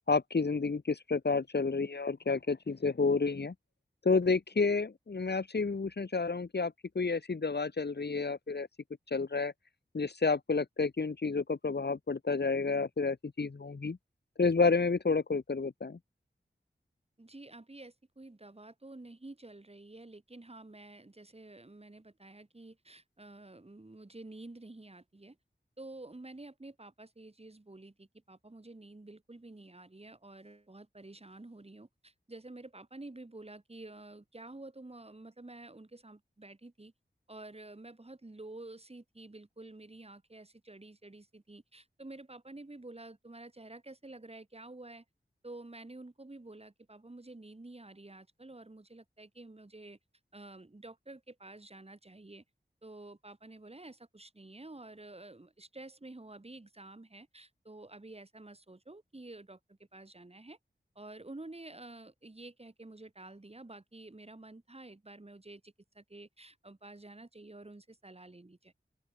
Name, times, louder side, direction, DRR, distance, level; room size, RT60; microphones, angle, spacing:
voice 1, 0.1-3.5 4.0-8.7 9.1-9.5 9.9-14.0 14.4-16.0, left 4 dB, 65° left, 2.1 m, -30 dB
voice 2, 17.2-25.4 25.8-36.9 37.3-45.0 45.4-50.0 50.3-52.4 52.8-60.6 61.0-68.7, right 2 dB, 35° right, 5.7 m, -50 dB
open air
wide cardioid pair, 85°, 19 cm